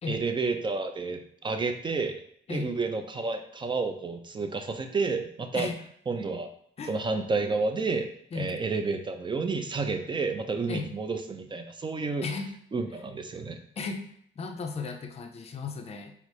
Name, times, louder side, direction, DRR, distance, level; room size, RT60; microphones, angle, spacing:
voice 1, 0.1-2.2 2.5-5.7 6.1-6.5 6.9-8.1 8.4-12.3 12.7-13.6, right 4 dB, 25° right, 6 dB, 0.4 m, -30 dB
voice 2, 12.2-12.6 13.8-14.1 14.4-16.1, left 4 dB, 30° left, 5 dB, 0.5 m, -35 dB
4.1 x 2.0 x 3.1 m, 0.66 s
cardioid pair, 90°, 20 cm